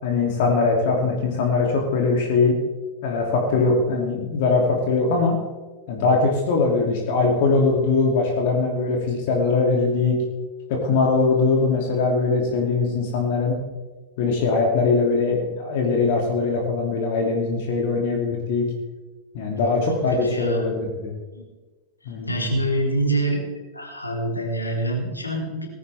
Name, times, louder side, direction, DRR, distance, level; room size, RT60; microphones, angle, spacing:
voice 1, 0.0-2.6 3.0-5.3 5.9-10.2 10.7-13.6 14.2-18.7 19.3-21.1 22.1-22.5, left 4 dB, 50° left, 1 dB, 2.7 m, -21 dB
voice 2, 19.5-20.7 21.3-21.4 22.0-23.4 23.7-25.7, right 1 dB, 85° left, 0 dB, 3.7 m, -26 dB
19.0 x 16.5 x 3.5 m, 1.3 s
figure-of-eight pair, 90°, 0 cm